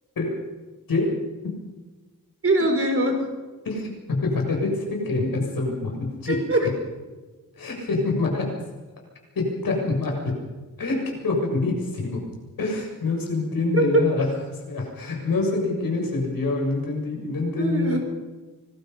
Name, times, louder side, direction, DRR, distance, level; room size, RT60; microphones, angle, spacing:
voice 1, 2.4-3.3 6.3-6.7 13.7-14.0 17.6-18.0, right 2 dB, 40° right, 4 dB, 4.4 m, -22 dB
voice 2, 3.6-6.4 7.6-8.5 9.4-10.4 10.8-12.2 12.6-14.3 14.7-18.0, left 3 dB, 90° left, 0 dB, 7.4 m, -25 dB
25.5 x 21.0 x 5.6 m, 1.3 s
wide cardioid pair, 175°, 34 cm